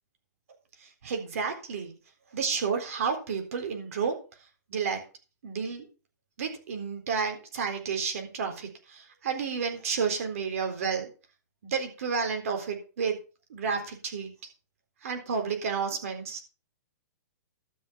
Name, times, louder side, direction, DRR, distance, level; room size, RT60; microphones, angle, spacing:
voice 1, 0.8-1.9 2.3-4.2 4.7-5.0 5.4-5.9 6.4-11.1 11.6-13.2 13.5-14.3 15.0-16.4, right 6 dB, 50° right, 5 dB, 4.0 m, -31 dB
12.5 x 6.5 x 6.2 m, 0.34 s
hypercardioid pair, 180°, 9 cm